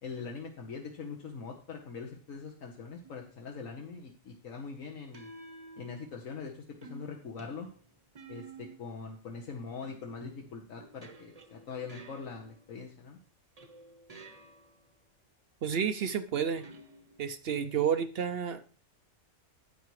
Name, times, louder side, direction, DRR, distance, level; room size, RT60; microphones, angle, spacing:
voice 1, 0.0-5.3 5.8-7.7 8.3-13.2, left 5 dB, 80° left, 1 dB, 1.5 m, -42 dB
sound 1, 3.0-3.4 5.1-6.4 6.8-9.0 9.8-12.8 13.6-14.8 16.6-17.4, right 3 dB, 30° right, 0.9 m, -52 dB
voice 2, 15.6-16.7 17.2-18.6, right 7 dB, 60° right, 10 dB, 0.8 m, -30 dB
10.5 x 8.3 x 3.1 m, 0.39 s
omnidirectional pair, 1.3 m